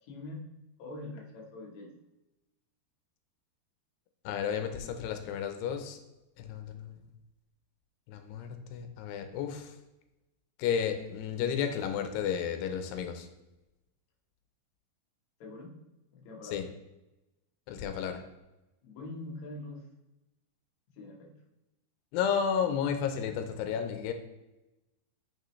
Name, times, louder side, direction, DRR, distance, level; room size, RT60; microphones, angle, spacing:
voice 1, 0.0-0.5 0.8-1.9 15.4-15.8 16.1-16.7 18.8-19.8 20.9-21.3, left 2 dB, 60° left, -1 dB, 2.1 m, -43 dB
voice 2, 4.2-6.0 6.4-7.0 8.1-9.7 10.6-13.3 16.5-16.6 17.7-18.2 22.1-24.1, left 7 dB, 90° left, 6 dB, 2.9 m, -32 dB
9.2 x 6.1 x 3.1 m, 0.99 s
omnidirectional pair, 4.7 m